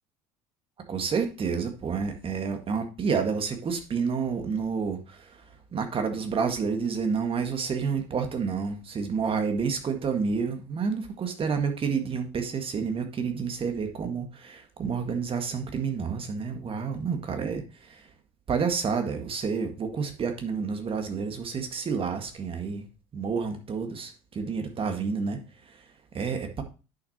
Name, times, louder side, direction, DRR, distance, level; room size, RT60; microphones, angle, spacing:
voice 1, 0.9-5.4 5.7-18.1 18.5-22.9 23.1-25.4 25.7-25.8 26.1-26.6, right 5 dB, 35° right, 6 dB, 1.8 m, -29 dB
10.5 x 6.1 x 2.8 m, 0.32 s
hypercardioid pair, 70°, 15 cm